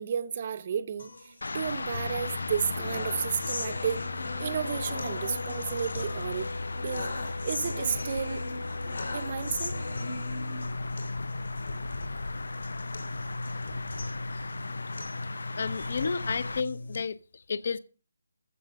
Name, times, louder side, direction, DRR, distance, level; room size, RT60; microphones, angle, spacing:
voice 1, 0.0-4.0 4.4-6.5 6.8-8.4 9.1-9.8, right 7 dB, 25° right, 0.6 m, -32 dB
sound 1, 1.0-17.0, left 3 dB, 65° left, 3.1 m, -37 dB
sound 2, 1.4-16.6, left 3 dB, 85° left, 0.6 m, -38 dB
voice 2, 15.6-17.8, left 5 dB, 40° left, 0.6 m, -32 dB
14.5 x 6.6 x 5.6 m
hypercardioid pair, 180°, 0 cm